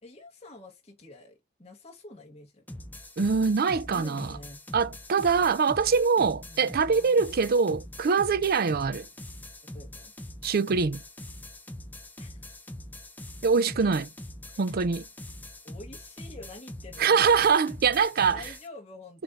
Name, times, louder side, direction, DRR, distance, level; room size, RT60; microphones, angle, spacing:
voice 1, 0.0-2.6 3.9-4.6 6.4-7.4 9.7-10.1 12.2-12.5 13.8-14.0 14.5-14.9 15.6-17.4 18.3-19.2, left 2 dB, 30° left, 1.3 m, -47 dB
sound 1, 2.7-18.7, left 1 dB, 10° left, 0.5 m, -43 dB
voice 2, 3.2-4.3 4.7-9.1 10.4-11.0 13.4-14.1 14.6-15.0 17.0-18.4, right 5 dB, 45° right, 0.4 m, -23 dB
7.7 x 2.6 x 5.3 m
head